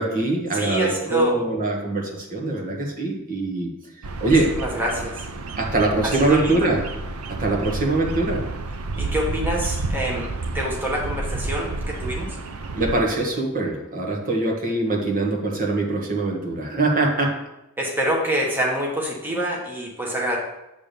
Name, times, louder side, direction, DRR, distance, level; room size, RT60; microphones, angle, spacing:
voice 1, 0.0-3.7 4.2-4.5 5.6-6.8 7.3-8.4 12.8-17.4, right 2 dB, 40° right, 0 dB, 1.5 m, -23 dB
voice 2, 0.5-1.4 4.2-5.2 6.0-6.6 9.0-12.4 17.8-20.4, right 1 dB, 10° right, -3 dB, 1.2 m, -26 dB
Bird vocalization bird call bird song, 4.0-13.0, right 3 dB, 85° right, 0.7 m, -30 dB
9.1 x 3.6 x 6.8 m, 0.93 s
head